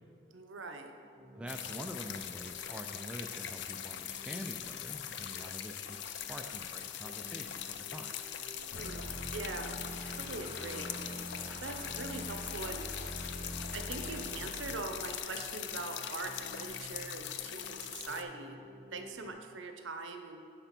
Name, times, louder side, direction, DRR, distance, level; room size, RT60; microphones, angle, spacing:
voice 1, 0.3-0.9 8.7-9.0 9.3-10.9 11.6-12.9 13.7-18.6 18.9-20.5, right 3 dB, 80° right, 5 dB, 0.7 m, -42 dB
sound 1, 1.1-19.3, equal, 35° right, 1.3 m, -56 dB
voice 2, 1.4-8.1, equal, 5° right, 3 dB, 0.3 m, -45 dB
sound 2, 1.5-18.2, left 10 dB, 65° left, 0.4 m, -41 dB
sound 3, 8.7-15.2, equal, 45° left, 1.1 m, -44 dB
10.0 x 3.4 x 5.9 m, 2.5 s
head